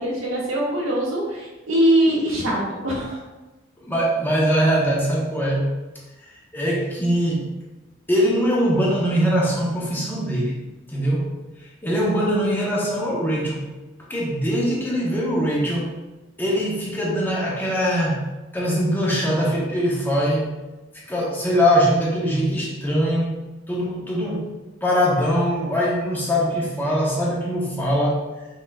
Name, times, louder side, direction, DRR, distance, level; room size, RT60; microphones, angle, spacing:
voice 1, 0.0-3.2, right 1 dB, 80° right, -4 dB, 1.3 m, -22 dB
voice 2, 3.9-5.7 6.2-7.5 8.1-10.5 10.9-11.3 11.6-13.7 14.1-15.9 16.4-18.2 18.5-20.6 21.1-23.4 23.7-24.5 24.8-28.2, equal, 10° left, -5 dB, 0.8 m, -22 dB
5.4 x 3.8 x 2.3 m, 1.1 s
head